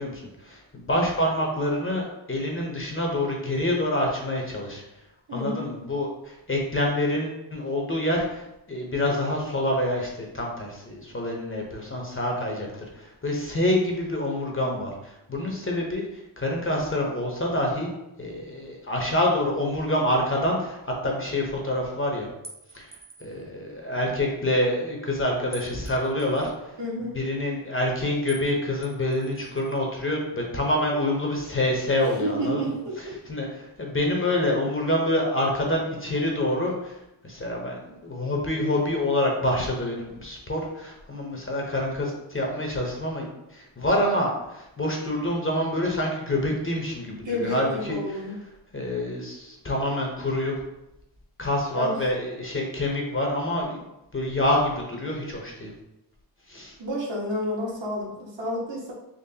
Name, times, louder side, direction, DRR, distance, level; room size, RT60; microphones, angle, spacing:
voice 1, 0.0-4.8 5.3-16.0 16.4-17.9 18.2-22.3 22.7-22.9 23.2-37.0 37.2-48.0 48.7-50.5 51.4-53.8 54.1-55.7 56.5-56.7, left 1 dB, 25° left, 0 dB, 0.7 m, -27 dB
voice 2, 5.3-5.7 26.8-27.2 32.0-32.9 47.2-48.3 51.7-51.9 56.8-58.9, equal, 60° right, -4 dB, 1.2 m, -30 dB
sound 1, 22.4-23.4 25.5-26.5 28.3-28.5 28.8-29.8, right 2 dB, 15° right, 0.5 m, -46 dB
3.9 x 3.0 x 2.8 m, 0.89 s
wide cardioid pair, 110°, 49 cm